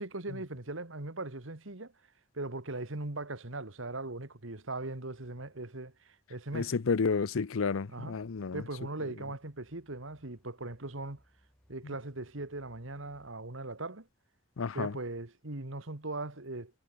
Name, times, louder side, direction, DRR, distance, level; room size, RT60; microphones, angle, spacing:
voice 1, 0.0-1.9 2.3-6.7 7.9-8.2 8.5-11.2 11.7-14.1 14.7-16.8, right 2 dB, 80° right, 2.1 m, -39 dB
sound 1, 4.8-13.3, equal, 5° left, 7.8 m, -70 dB
voice 2, 6.5-8.6 11.8-11.9 14.6-14.9, left 5 dB, 90° left, 0.6 m, -31 dB
head